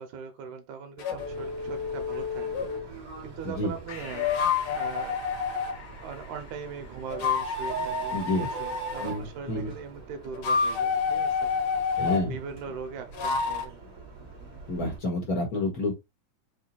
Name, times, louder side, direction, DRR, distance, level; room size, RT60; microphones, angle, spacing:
voice 1, 0.0-2.7 3.2-4.4 4.8-5.2 6.0-11.5 12.0-13.8, right 6 dB, 85° right, 2.3 m, -40 dB
sound 1, 1.0-2.9 4.0-5.8 7.1-9.2 10.3-12.3 13.1-13.7, left 5 dB, 85° left, 2.4 m, -29 dB
Subway metro underground, 1.2-15.0, right 5 dB, 35° right, 1.6 m, -44 dB
Breathing, 3.9-8.8, left 5 dB, 70° left, 0.7 m, -47 dB
voice 2, 8.1-8.5 9.0-9.7 12.0-12.3 14.7-15.9, left 2 dB, 40° left, 1.4 m, -29 dB
5.6 x 2.3 x 4.1 m
omnidirectional pair, 3.4 m